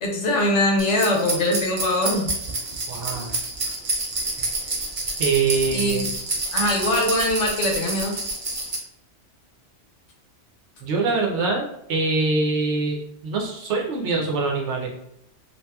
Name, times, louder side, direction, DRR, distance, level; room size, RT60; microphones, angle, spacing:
voice 1, 0.0-2.4 5.7-6.1 6.5-8.2, left 1 dB, 80° left, 0 dB, 1.0 m, -22 dB
sound 1, 0.8-8.8, right 2 dB, 50° right, 0.4 m, -28 dB
voice 2, 2.9-3.3 5.2-6.1 10.8-13.0 13.2-14.9, right 4 dB, 70° right, 0 dB, 0.9 m, -24 dB
2.8 x 2.4 x 2.2 m, 0.76 s
omnidirectional pair, 1.2 m